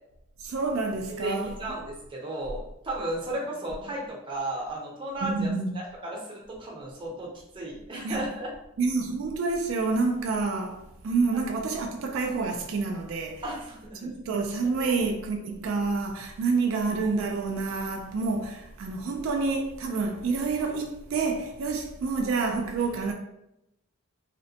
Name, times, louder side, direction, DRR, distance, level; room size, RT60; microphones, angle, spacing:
voice 1, 0.4-1.8 5.2-5.8 8.0-8.3 8.8-13.4 14.0-23.1, right 4 dB, 75° right, 0.3 m, -28 dB
voice 2, 1.1-5.5 5.7-8.5 13.4-14.1 14.8-14.9, right 1 dB, 25° right, 0.6 m, -34 dB
2.7 x 2.1 x 2.7 m
head